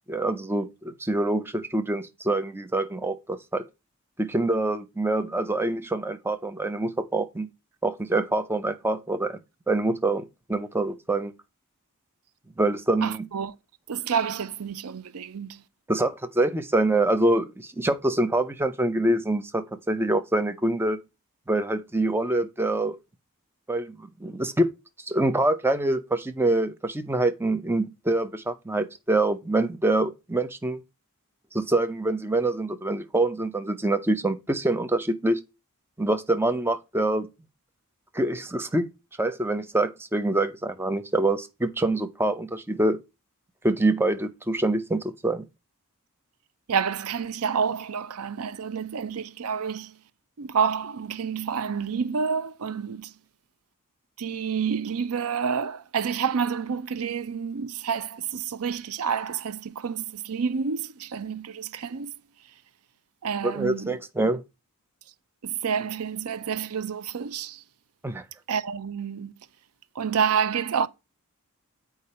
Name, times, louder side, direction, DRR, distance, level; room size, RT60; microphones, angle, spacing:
voice 1, 0.1-3.6 4.2-7.5 7.8-9.4 9.7-11.3 12.6-13.2 15.9-21.0 21.5-23.0 23.7-24.7 25.1-30.8 31.5-35.4 36.0-37.3 38.1-38.9 39.2-43.0 43.6-45.4 63.4-64.4 68.0-68.2, right 2 dB, 10° right, 0.6 m, -25 dB
voice 2, 13.0-13.5 13.9-15.6 46.7-50.0 50.4-53.1 54.2-62.2 63.2-64.0 65.4-67.6 68.5-69.3 69.9-70.9, right 6 dB, 75° right, 0.5 m, -29 dB
8.4 x 4.8 x 4.2 m
head